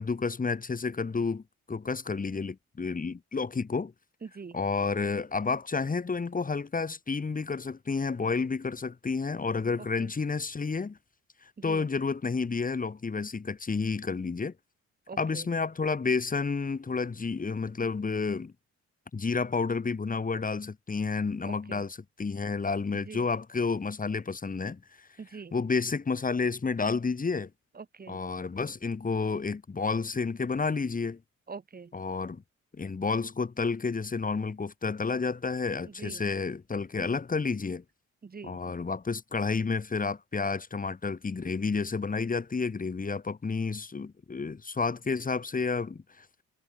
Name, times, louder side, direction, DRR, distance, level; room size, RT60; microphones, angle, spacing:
voice 1, 0.0-3.9 4.5-11.0 11.4-14.5 15.2-18.5 19.1-25.1 25.5-27.5 28.1-31.2 31.9-32.4 32.7-37.8 38.4-46.3, left 4 dB, 30° left, 2.2 m, -30 dB
voice 2, 4.2-4.6 10.0-10.1 11.7-11.9 15.1-15.5 21.5-21.8 23.0-23.3 25.2-25.5 27.8-28.2 31.5-31.9 35.9-36.2 38.2-38.6, right 5 dB, 30° right, 2.0 m, -44 dB
cardioid pair, 90°, 30 cm